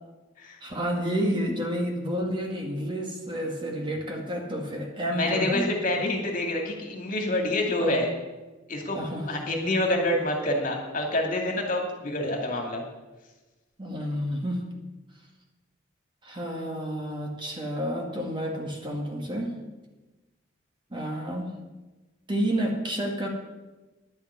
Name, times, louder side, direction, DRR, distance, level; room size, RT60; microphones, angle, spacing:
voice 1, 0.6-5.7 6.0-6.1 8.9-9.3 13.8-14.6 16.2-19.5 20.9-21.5 22.3-23.3, equal, 25° right, 1 dB, 2.0 m, -30 dB
voice 2, 5.1-8.1 8.7-12.8, left 1 dB, 45° left, 1 dB, 2.5 m, -27 dB
10.5 x 7.3 x 9.5 m, 1.1 s
head